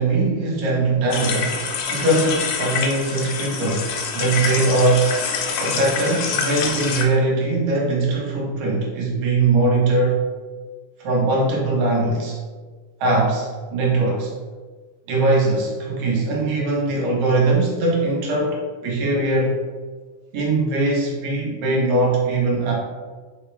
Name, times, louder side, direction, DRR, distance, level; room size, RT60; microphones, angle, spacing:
voice 1, 0.0-1.6 1.9-5.1 5.6-10.2 11.0-12.4 13.0-14.3 15.1-19.6 20.3-22.7, right 2 dB, 70° right, -3 dB, 2.1 m, -21 dB
sound 1, 1.1-7.0, left 5 dB, 90° left, 1.3 m, -26 dB
5.2 x 2.0 x 4.3 m, 1.4 s
omnidirectional pair, 3.4 m